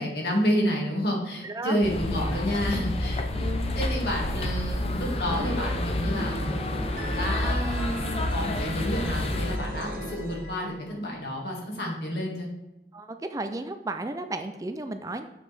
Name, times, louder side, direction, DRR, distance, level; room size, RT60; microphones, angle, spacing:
voice 1, 0.0-6.6 7.1-12.5, equal, 70° left, -2 dB, 2.1 m, -30 dB
voice 2, 1.4-1.8 12.9-15.3, right 2 dB, 20° right, 8 dB, 0.4 m, -33 dB
sound 1, 1.8-9.6, left 1 dB, 35° left, 0.6 m, -29 dB
sound 2, 5.3-5.6 5.9-10.9, right 1 dB, 50° right, 1.1 m, -35 dB
7.3 x 6.5 x 3.4 m, 0.98 s
head